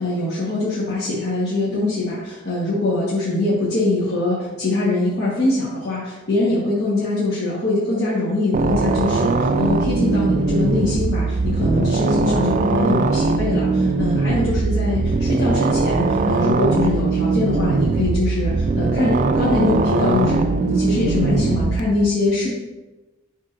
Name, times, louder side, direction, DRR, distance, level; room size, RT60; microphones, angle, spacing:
voice 1, 0.0-22.5, left 2 dB, 55° left, -9 dB, 1.4 m, -22 dB
sound 1, 8.5-21.8, right 3 dB, 40° right, 0.3 m, -20 dB
11.0 x 3.7 x 2.6 m, 1.1 s
head